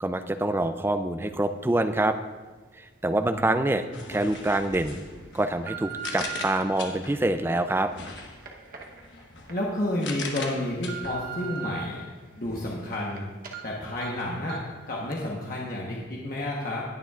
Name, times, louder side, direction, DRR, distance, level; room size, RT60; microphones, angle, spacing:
voice 1, 0.0-2.2 2.8-5.0 5.3-7.9, right 1 dB, 10° right, 8 dB, 0.3 m, -26 dB
voice 2, 3.0-3.9 9.5-12.0 12.3-13.3 13.6-16.8, left 1 dB, 50° left, -3 dB, 1.1 m, -31 dB
sound 1, 3.3-3.4 4.1-4.4 5.0-6.6 7.3-9.6 10.0-10.1 10.5-11.8 12.3-13.2 13.4-13.6 14.0-14.1 14.5-14.8 15.1-15.2, right 9 dB, 45° right, 0.9 m, -40 dB
sound 2, 3.9-7.3 7.9-11.8, left 4 dB, 70° left, 1.1 m, -40 dB
19.5 x 6.8 x 2.4 m, 1.4 s
head